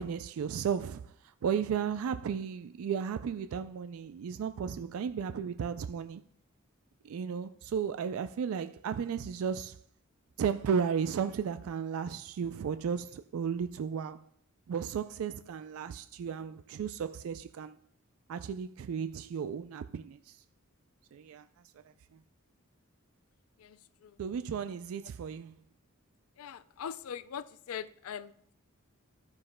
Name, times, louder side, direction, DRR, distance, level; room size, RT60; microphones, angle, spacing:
voice 1, 0.0-6.2 7.0-9.8 10.4-14.2 14.7-17.8 18.3-20.4 21.1-21.5 24.2-25.6, right 7 dB, 75° right, 0.3 m, -34 dB
voice 2, 23.6-24.2 26.4-28.5, left 8 dB, 80° left, 0.4 m, -42 dB
12.0 x 9.7 x 2.2 m
head